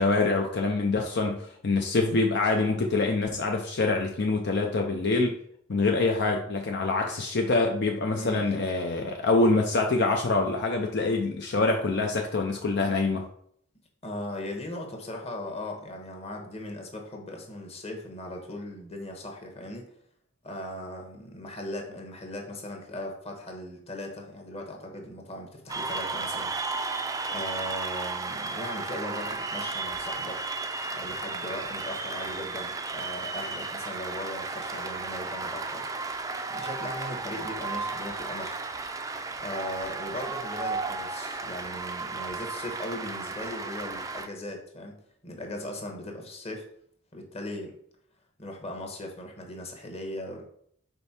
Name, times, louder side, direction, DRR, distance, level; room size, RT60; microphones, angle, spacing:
voice 1, 0.0-5.4 5.7-13.3, left 3 dB, 60° left, 2 dB, 0.6 m, -25 dB
voice 2, 8.1-8.6 14.0-19.9 20.4-30.4 30.9-35.8 36.5-38.5 39.4-46.7 47.1-47.8 48.4-50.4, left 1 dB, 30° left, 2 dB, 1.2 m, -38 dB
Cheering / Applause, 25.7-44.3, right 3 dB, 20° right, 0.4 m, -34 dB
5.3 x 4.4 x 4.3 m, 0.65 s
head